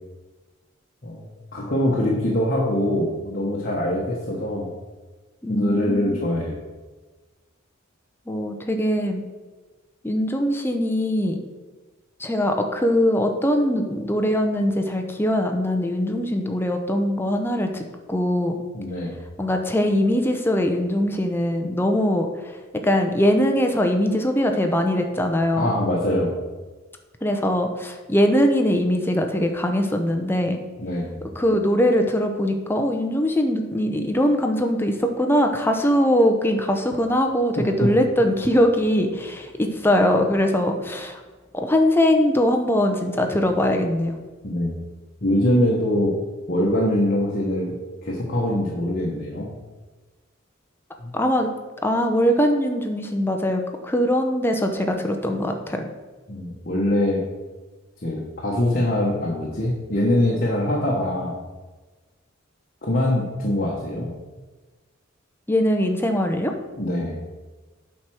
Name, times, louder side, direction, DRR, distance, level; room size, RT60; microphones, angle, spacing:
voice 1, 1.5-4.7 5.5-6.6 18.7-19.2 25.6-26.3 30.8-31.2 37.8-37.9 44.4-44.8 45.2-46.2 46.5-47.8 48.0-49.5 51.0-51.1 55.7-55.8 56.3-57.3 58.0-61.4 62.8-64.1 66.8-67.2, left 1 dB, 45° left, -4 dB, 1.2 m, -23 dB
voice 2, 5.4-6.2 8.3-9.2 10.0-11.4 12.2-18.6 19.4-25.7 27.2-30.6 31.4-41.2 41.5-44.2 51.1-51.5 51.8-55.8 65.5-66.5, equal, 10° left, 4 dB, 0.7 m, -21 dB
8.2 x 4.4 x 6.2 m, 1.3 s
head